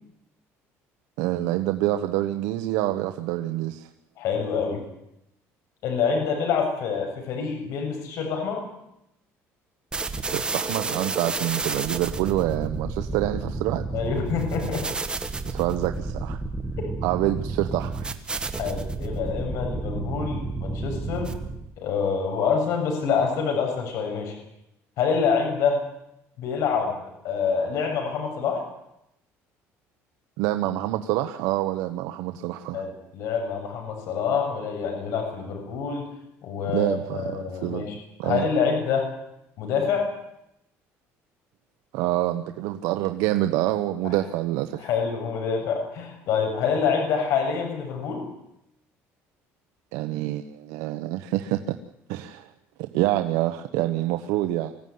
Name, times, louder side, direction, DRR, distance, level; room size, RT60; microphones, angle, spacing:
voice 1, 1.2-3.9 10.3-13.9 15.5-16.4 17.0-18.1 30.4-32.8 36.7-37.8 38.2-38.4 41.9-44.8 49.9-51.8 52.1-52.5 52.8-54.7, right 15 dB, 90° right, 8 dB, 1.1 m, -26 dB
voice 2, 4.2-4.8 5.8-8.6 13.9-14.9 16.8-16.9 18.6-21.3 21.8-24.3 25.0-25.8 26.4-27.0 27.2-28.6 32.7-36.1 36.4-38.0 38.2-39.1 39.6-40.1 44.0-44.2 44.8-48.3, left 6 dB, 65° left, 3 dB, 7.2 m, -26 dB
sound 1, 9.9-21.7, right 3 dB, 15° right, 1.8 m, -31 dB
25.0 x 16.5 x 9.6 m, 0.84 s
cardioid pair, 135°, 6 cm